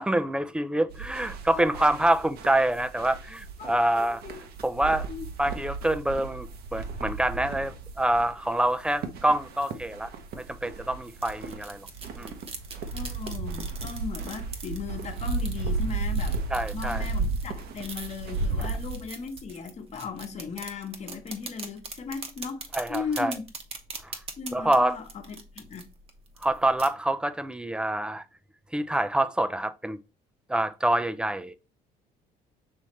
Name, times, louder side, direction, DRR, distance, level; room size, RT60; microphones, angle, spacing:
voice 1, 0.0-4.2 4.6-5.1 5.4-10.1 10.3-11.9 12.1-12.3 16.5-17.1 18.6-18.7 22.7-23.3 24.0-24.2 24.5-25.0 26.4-28.2 28.7-30.0 30.5-31.5, right 1 dB, 5° right, 0.4 m, -26 dB
sound 1, 0.9-19.0, right 3 dB, 65° right, 0.9 m, -34 dB
voice 2, 1.5-1.9 3.6-4.4 5.1-5.3 12.9-16.4 16.7-23.4 24.4-25.8, left 5 dB, 40° left, 1.1 m, -37 dB
sound 2, 11.1-26.9, right 4 dB, 35° right, 0.9 m, -43 dB
5.5 x 3.2 x 3.0 m
cardioid pair, 110°, 17 cm